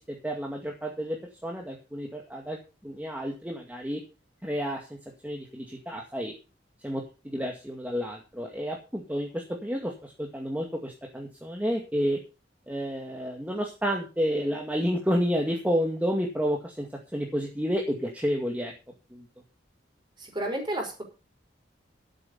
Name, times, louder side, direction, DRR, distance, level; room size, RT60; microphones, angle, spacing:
voice 1, 0.0-2.6 2.8-4.0 4.4-5.0 5.2-6.3 6.8-12.2 12.7-18.7 19.1-19.3, equal, 10° right, 1 dB, 2.1 m, -30 dB
voice 2, 20.2-21.0, right 1 dB, 25° right, 2 dB, 5.4 m, -31 dB
12.5 x 8.5 x 5.6 m, 0.31 s
head